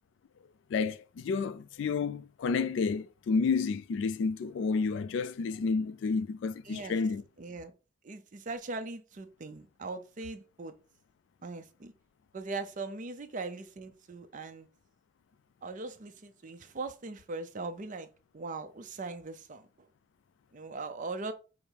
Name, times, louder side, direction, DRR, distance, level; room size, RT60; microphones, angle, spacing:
voice 1, 0.7-7.2, left 4 dB, 65° left, 0.3 m, -30 dB
voice 2, 6.6-7.0 7.4-7.7 8.0-10.7 11.4-11.9 12.3-14.7 15.6-18.1 18.3-19.9 20.5-21.3, right 3 dB, 40° right, 0.5 m, -40 dB
5.1 x 2.0 x 4.4 m
head